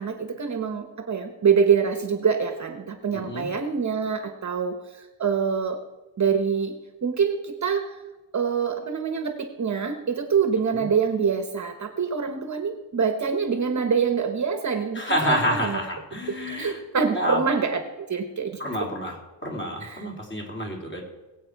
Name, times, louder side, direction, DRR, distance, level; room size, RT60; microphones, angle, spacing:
voice 1, 0.0-5.8 6.2-6.7 7.0-8.0 8.3-15.8 16.3-17.8 18.1-18.9 19.8-20.0, right 6 dB, 40° right, 7 dB, 1.0 m, -25 dB
voice 2, 3.1-3.5 10.7-10.9 14.9-16.8 17.1-17.4 18.6-21.0, equal, 25° left, -1 dB, 3.2 m, -28 dB
20.5 x 8.3 x 4.6 m, 1.1 s
wide cardioid pair, 140°, 46 cm